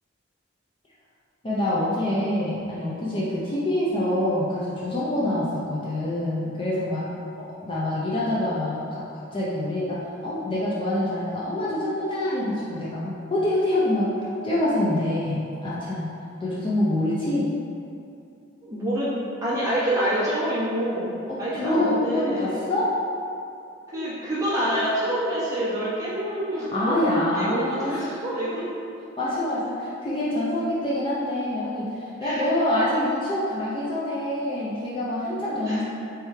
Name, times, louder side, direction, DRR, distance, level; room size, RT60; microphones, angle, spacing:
voice 1, 1.4-7.1 7.6-14.1 14.4-16.1 16.4-17.5 21.3-22.9 26.5-28.2 29.2-35.8, left 1 dB, 25° left, -8 dB, 0.4 m, -26 dB
voice 2, 18.6-19.1 19.4-22.6 23.9-27.0 27.3-28.7 32.2-32.4 35.6-35.8, right 1 dB, 15° right, -9 dB, 0.9 m, -27 dB
3.4 x 3.1 x 3.2 m, 2.6 s
head